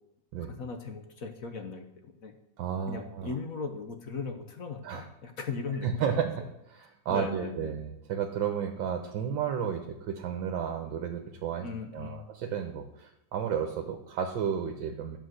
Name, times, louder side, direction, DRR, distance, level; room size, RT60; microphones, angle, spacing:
voice 1, 0.6-2.4 2.9-6.5 7.1-7.7 11.6-12.3, left 4 dB, 55° left, 5 dB, 1.2 m, -38 dB
voice 2, 2.6-3.3 4.8-5.0 5.8-11.7 11.9-15.2, right 8 dB, 80° right, 4 dB, 1.6 m, -32 dB
10.5 x 4.9 x 7.7 m, 0.86 s
omnidirectional pair, 2.1 m